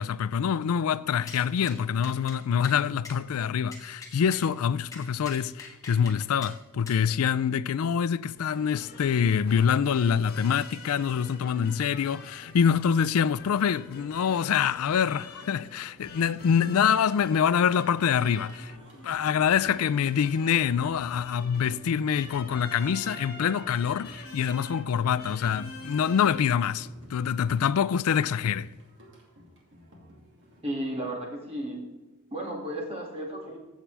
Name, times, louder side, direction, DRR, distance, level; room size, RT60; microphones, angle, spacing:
voice 1, 0.0-18.7 19.0-28.7, left 7 dB, 75° left, 0.4 m, -25 dB
sound 1, 1.3-1.8 2.0-2.4 2.6-2.8 3.0-3.2 3.7-4.5 4.9-6.2 6.4-6.5 6.9-7.0, left 3 dB, 15° left, 1.5 m, -43 dB
sound 2, 8.3-26.4, left 2 dB, 45° left, 2.0 m, -46 dB
Singing, 18.2-30.6, equal, 55° right, 2.5 m, -53 dB
voice 2, 30.6-31.8 32.3-33.6, right 1 dB, 25° right, 2.2 m, -33 dB
15.0 x 7.3 x 3.4 m
head